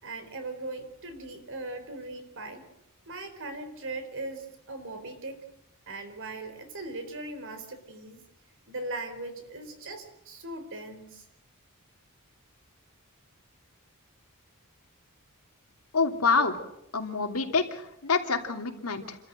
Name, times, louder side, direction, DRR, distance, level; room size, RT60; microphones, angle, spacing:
voice 1, 0.0-2.6 3.1-5.4 5.9-8.2 8.7-11.2, right 2 dB, 60° right, 8 dB, 4.2 m, -39 dB
voice 2, 15.9-16.6 16.9-19.2, left 4 dB, 80° left, 4 dB, 2.8 m, -27 dB
28.5 x 14.0 x 9.0 m, 0.83 s
head